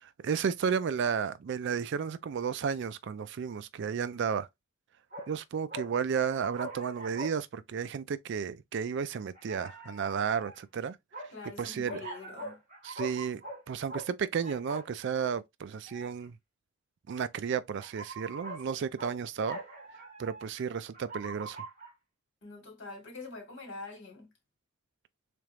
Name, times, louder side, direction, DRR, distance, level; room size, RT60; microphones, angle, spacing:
voice 1, 0.0-4.5 5.3-11.0 11.6-12.0 12.8-13.4 13.7-16.4 17.1-19.6 20.2-21.6, right 6 dB, 60° right, 0.4 m, -33 dB
sound 1, 5.1-5.3 5.7-7.4 7.8-7.9 9.1-10.6 11.1-11.3 11.9-13.6 13.9-14.1 14.4-14.9 15.9-16.2 17.1-17.2 17.8-18.7 19.0-19.2 19.4-20.6 20.9-21.9, right 2 dB, 40° right, 1.8 m, -43 dB
voice 2, 11.3-12.6 22.4-24.3, left 3 dB, 60° left, 2.0 m, -45 dB
3.7 x 3.4 x 3.0 m
head